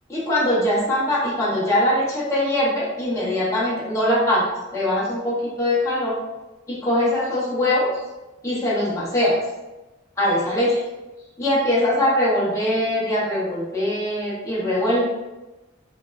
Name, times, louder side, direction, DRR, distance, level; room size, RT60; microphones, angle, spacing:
voice 1, 0.1-4.5 4.7-6.2 6.7-8.0 8.4-9.4 10.2-10.8 11.4-15.1, left 1 dB, 15° left, -7 dB, 0.6 m, -22 dB
4.1 x 2.4 x 2.2 m, 1.1 s
head